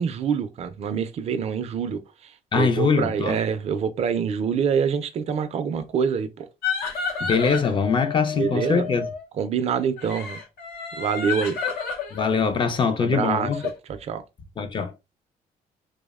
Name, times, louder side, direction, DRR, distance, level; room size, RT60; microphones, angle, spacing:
voice 1, 0.0-6.5 8.3-8.9 9.4-10.4 11.0-11.6 13.0-13.5 13.9-14.2, right 7 dB, 45° right, 0.4 m, -26 dB
voice 2, 2.5-3.4 7.2-9.1 12.1-13.6 14.6-14.9, left 5 dB, 35° left, 0.4 m, -23 dB
sound 1, 6.6-9.2 10.0-13.8, left 6 dB, 90° left, 0.7 m, -31 dB
2.7 x 2.0 x 2.3 m
cardioid pair, 115°, 15 cm